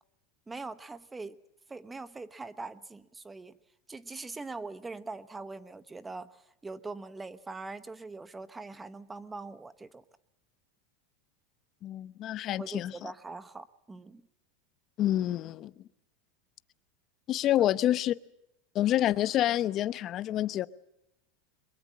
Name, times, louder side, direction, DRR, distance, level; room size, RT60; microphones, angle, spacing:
voice 1, 0.5-1.3 1.7-3.6 3.9-10.0 12.6-14.2, right 3 dB, 10° right, 1.0 m, -42 dB
voice 2, 11.8-13.1 15.0-15.7 17.3-18.1 18.7-20.7, left 12 dB, 40° left, 0.9 m, -28 dB
22.5 x 22.5 x 7.4 m
supercardioid pair, 125°, 0 cm